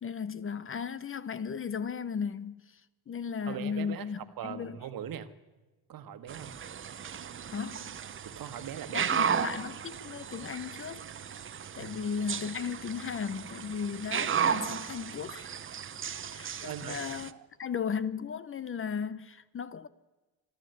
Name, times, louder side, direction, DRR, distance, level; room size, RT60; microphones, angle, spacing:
voice 1, 0.0-2.8 3.1-4.8 7.5-7.9 8.9-11.0 11.7-15.5 16.2-17.3 17.6-19.9, left 6 dB, 30° left, 0.8 m, -36 dB
voice 2, 3.5-5.3 5.9-6.5 8.2-9.1 11.8-12.0 16.6-17.0 17.3-17.5, right 9 dB, 60° right, 1.5 m, -40 dB
sound 1, 6.3-17.3, right 7 dB, 30° right, 0.8 m, -35 dB
25.5 x 12.5 x 7.9 m
cardioid pair, 95°, 39 cm